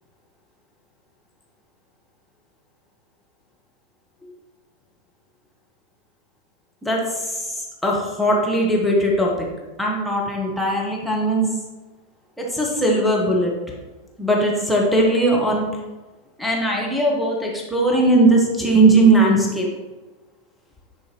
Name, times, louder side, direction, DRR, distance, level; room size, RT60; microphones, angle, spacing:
voice 1, 6.8-9.5 9.8-11.5 12.4-13.5 14.2-15.6 16.4-19.7, right 2 dB, ahead, -3 dB, 1.2 m, -19 dB
9.6 x 4.3 x 3.1 m, 1.2 s
figure-of-eight pair, 90°, 0 cm